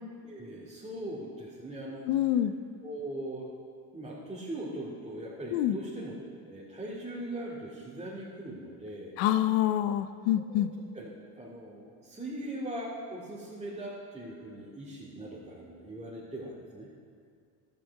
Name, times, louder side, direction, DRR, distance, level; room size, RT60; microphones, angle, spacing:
voice 1, 0.2-2.1 2.8-3.5 3.9-6.1 6.4-9.2 10.5-10.6 10.9-11.1 11.4-16.9, right 1 dB, 15° right, -9 dB, 2.2 m, -40 dB
voice 2, 2.1-2.5 5.5-5.8 9.2-10.7, left 12 dB, 75° left, 12 dB, 0.7 m, -26 dB
12.0 x 8.4 x 4.6 m, 2.2 s
supercardioid pair, 80°, 45 cm